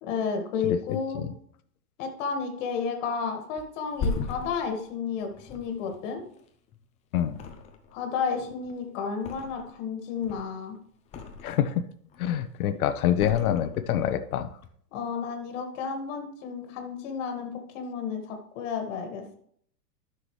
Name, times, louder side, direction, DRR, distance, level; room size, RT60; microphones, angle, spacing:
voice 1, 0.0-1.2 2.0-6.2 7.9-10.8 14.9-19.4, left 6 dB, 50° left, 4 dB, 1.9 m, -32 dB
Thump thud, 3.6-6.9 7.3-8.1 8.4-9.8 10.2-11.7 12.1-12.6 13.1-14.1 14.5-14.7, left 4 dB, 15° left, 0.6 m, -37 dB
voice 2, 11.4-11.8 12.2-14.5, left 10 dB, 65° left, 11 dB, 1.0 m, -26 dB
13.0 x 6.0 x 3.2 m, 0.64 s
hypercardioid pair, 145°, 47 cm